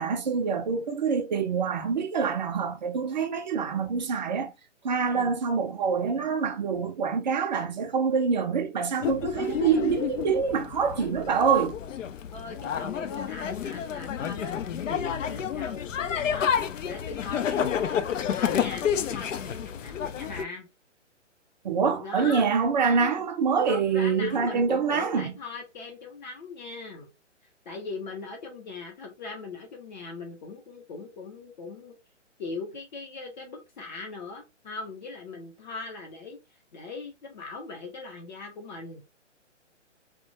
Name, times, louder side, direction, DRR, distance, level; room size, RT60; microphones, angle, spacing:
voice 1, 0.0-4.5 4.8-11.8 21.6-25.3, right 6 dB, 40° right, 0.4 m, -26 dB
sound 1, 9.0-20.4, left 8 dB, 85° left, 0.5 m, -30 dB
voice 2, 12.3-18.1 18.3-20.7 22.0-22.5 22.8-23.2 23.7-27.1 27.7-31.9 32.4-39.0, left 3 dB, 40° left, 0.6 m, -40 dB
2.3 x 2.1 x 2.8 m
hypercardioid pair, 140°, 37 cm